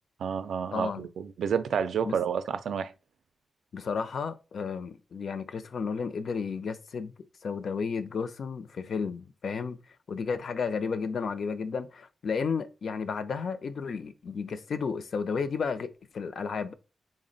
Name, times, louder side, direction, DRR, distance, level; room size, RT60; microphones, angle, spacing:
voice 1, 0.2-2.9, right 7 dB, 85° right, 0.3 m, -30 dB
voice 2, 0.7-1.1 2.1-2.2 3.7-7.1 7.4-9.8 10.1-16.7, left 5 dB, 60° left, 0.4 m, -32 dB
4.1 x 2.1 x 3.8 m
wide cardioid pair, 130°, 0 cm